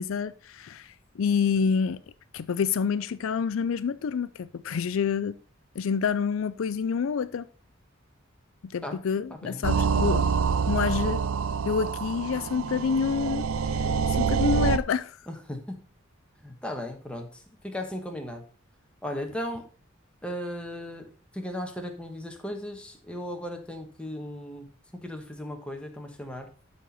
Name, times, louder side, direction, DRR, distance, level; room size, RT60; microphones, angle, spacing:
voice 1, 0.0-2.0 2.3-5.3 5.8-7.5 8.6-10.3 10.7-11.2 11.7-13.4 14.1-15.1, left 6 dB, 75° left, 0.4 m, -27 dB
voice 2, 9.3-9.6 15.3-15.8 16.4-18.4 19.0-19.7 20.2-21.1 21.3-24.7 25.0-26.5, left 1 dB, 5° left, 1.2 m, -36 dB
sound 1, 9.6-14.8, right 6 dB, 90° right, 0.5 m, -26 dB
12.0 x 4.3 x 4.2 m
head